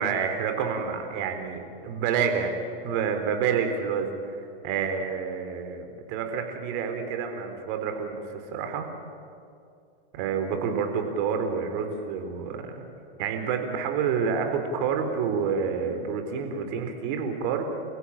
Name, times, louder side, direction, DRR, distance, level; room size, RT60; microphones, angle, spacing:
voice 1, 0.0-2.5 2.8-4.4 4.6-8.9 10.1-12.7 13.2-17.7, right 6 dB, 50° right, 6 dB, 4.0 m, -28 dB
29.5 x 16.0 x 8.9 m, 2.5 s
hypercardioid pair, 130°, 31 cm